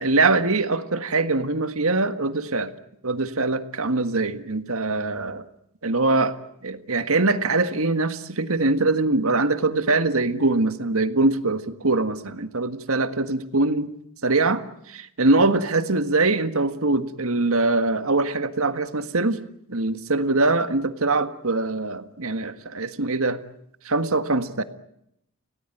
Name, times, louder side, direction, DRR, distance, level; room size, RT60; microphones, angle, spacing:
voice 1, 0.0-2.7 3.0-5.4 5.8-6.4 6.6-13.9 14.2-19.4 19.7-23.4 23.8-24.6, right 3 dB, 75° right, 10 dB, 1.7 m, -23 dB
29.5 x 18.5 x 9.2 m, 0.76 s
head